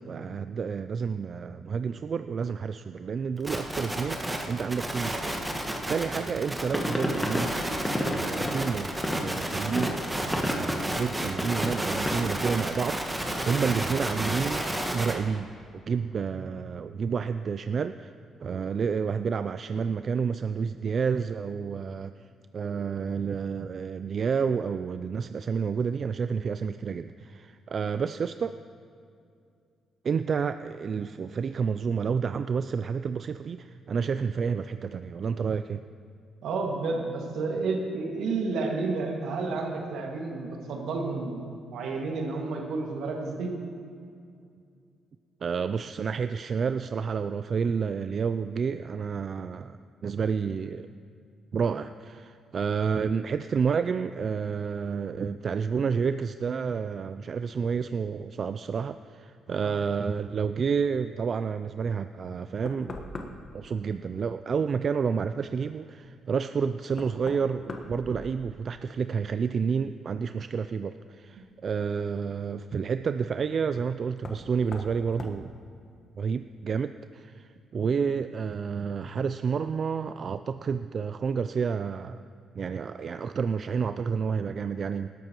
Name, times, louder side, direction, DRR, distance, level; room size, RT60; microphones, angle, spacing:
voice 1, 0.0-5.4 5.9-7.7 8.1-8.9 9.2-18.1 18.4-22.1 22.5-28.6 30.0-35.8 45.4-49.8 50.0-50.9 51.5-63.0 63.5-75.5 76.2-82.2 82.6-85.1, right 6 dB, 50° right, 11 dB, 0.3 m, -30 dB
sound 1, 3.4-15.1, right 1 dB, 10° right, 1.5 m, -31 dB
sound 2, 6.7-12.4, equal, 10° left, 1.8 m, -32 dB
voice 2, 36.4-43.5 59.6-59.8 77.7-77.9, right 3 dB, 80° right, 1 dB, 2.0 m, -31 dB
Knock, 62.7-63.6 66.0-66.1 66.9-68.8 69.1-69.7 71.4-71.5 74.2-74.5 74.7-74.9 75.2-75.4, left 2 dB, 45° left, 1.3 m, -41 dB
19.5 x 12.0 x 3.0 m, 2.4 s
cardioid pair, 90°, 0 cm